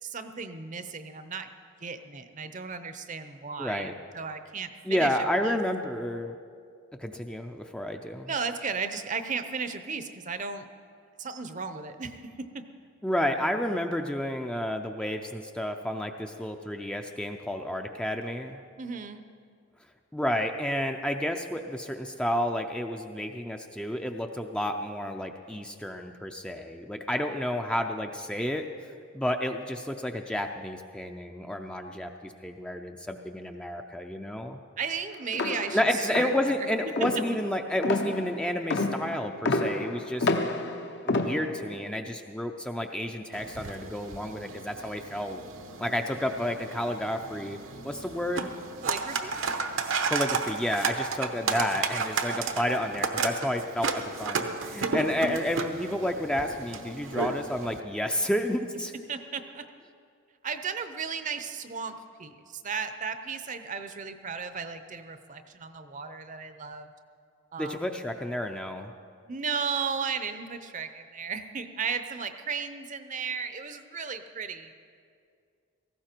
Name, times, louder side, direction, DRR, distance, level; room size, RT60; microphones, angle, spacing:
voice 1, 0.0-1.5 1.8-5.1 5.4-5.6 8.3-10.7 11.2-12.6 18.8-19.2 34.8-36.3 36.6-36.7 48.8-49.3 59.1-59.6 60.4-66.9 67.5-67.8 69.2-74.7, right 5 dB, 40° right, 9 dB, 0.7 m, -35 dB
voice 2, 3.6-3.9 4.9-6.3 7.0-8.3 13.0-18.6 20.1-28.7 29.1-34.6 35.7-40.3 41.0-45.4 45.8-47.6 47.8-48.5 50.1-58.9 67.6-68.9, left 1 dB, 5° left, 4 dB, 0.5 m, -30 dB
sound 1, 35.3-41.8, left 2 dB, 55° left, 0.8 m, -30 dB
sound 2, 43.3-57.8, right 4 dB, 75° right, 1.0 m, -33 dB
17.5 x 15.5 x 4.5 m, 2.3 s
head